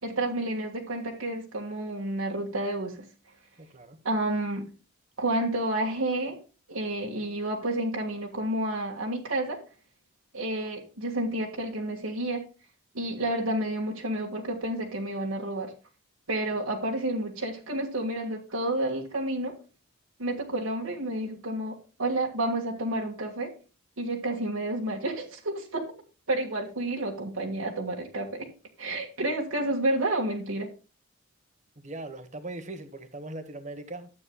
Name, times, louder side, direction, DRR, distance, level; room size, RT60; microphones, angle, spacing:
voice 1, 0.0-3.0 4.0-4.7 5.2-6.4 6.7-9.6 10.3-12.4 12.9-15.7 16.3-19.6 20.2-23.5 24.0-25.9 26.3-28.5 28.8-30.7, right 1 dB, 80° right, 1.7 m, -30 dB
voice 2, 3.6-4.0 31.8-34.1, right 2 dB, 35° right, 1.2 m, -40 dB
12.5 x 8.6 x 2.2 m
head